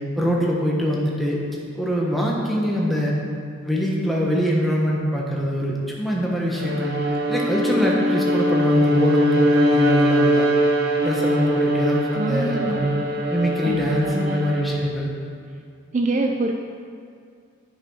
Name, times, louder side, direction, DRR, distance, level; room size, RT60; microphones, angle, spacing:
voice 1, 0.2-1.4 1.7-3.1 3.6-6.9 7.3-10.5 11.0-12.9 13.3-15.1, equal, ahead, -4 dB, 1.2 m, -23 dB
Bowed string instrument, 6.5-14.9, equal, 55° right, 0.9 m, -22 dB
voice 2, 12.2-13.1 13.6-14.4 15.9-16.5, right 2 dB, 35° right, 3 dB, 0.4 m, -25 dB
9.8 x 5.9 x 4.7 m, 2.3 s
head